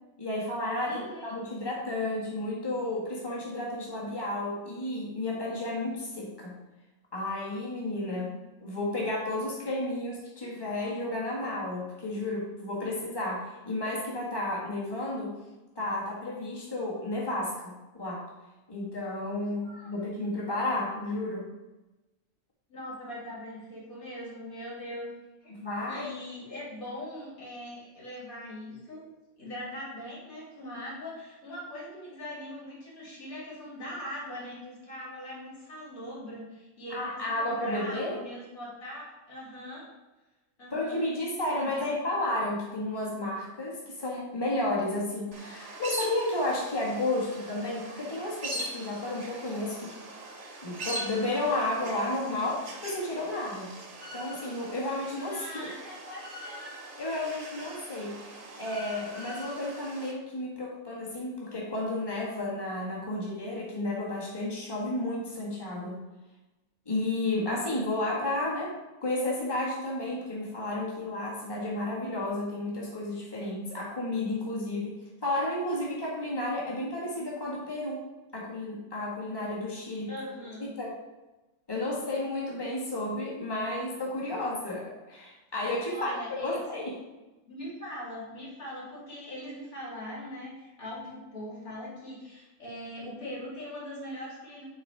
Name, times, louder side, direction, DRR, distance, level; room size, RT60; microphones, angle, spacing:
voice 1, 0.2-6.5 7.1-8.3 8.6-15.4 15.7-18.2 18.7-21.5 25.5-26.1 36.9-38.2 40.7-49.9 50.6-53.7 54.1-55.7 57.0-66.0 66.8-68.7 69.0-78.0 78.3-80.2 80.6-80.9 81.7-86.1 86.4-86.9, left 2 dB, 15° left, -4 dB, 1.8 m, -32 dB
voice 2, 0.8-1.3 8.1-8.5 19.6-19.9 22.7-25.1 25.4-25.6 25.9-29.1 29.4-39.9 40.6-41.0 41.5-41.9 55.3-56.6 80.1-80.8 85.9-86.9 87.5-94.6, left 1 dB, 80° left, -6 dB, 3.3 m, -41 dB
sound 1, 45.3-60.1, right 1 dB, 30° right, 1.0 m, -42 dB
8.6 x 4.2 x 4.8 m, 1.1 s
omnidirectional pair, 1.5 m